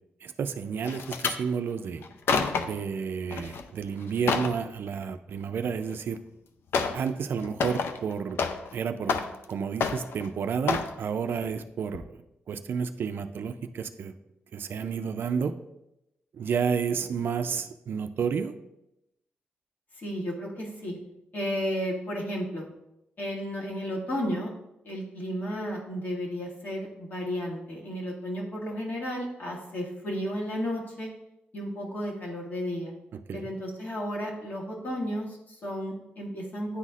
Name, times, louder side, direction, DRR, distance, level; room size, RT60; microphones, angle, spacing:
voice 1, 0.2-2.0 2.6-6.2 6.9-8.4 8.7-9.1 9.5-12.0 12.5-14.2 14.5-15.5 16.4-18.5 33.3-33.5, right 6 dB, 65° right, 9 dB, 0.4 m, -31 dB
sound 1, 0.8-1.4 2.0-2.8 3.3-3.6 4.0-4.6 5.9-6.0 6.7-7.1 7.4-8.8 9.0-9.5 9.8-10.3 10.7-11.0 11.4-11.6 11.9-12.0, left 5 dB, 75° left, 0.4 m, -29 dB
voice 2, 20.0-21.0 21.3-22.7 23.2-24.5 24.8-31.1 31.5-32.9 33.3-36.8, equal, 50° left, -2 dB, 1.8 m, -33 dB
9.7 x 4.1 x 2.4 m, 0.87 s
cardioid pair, 100°, 4 cm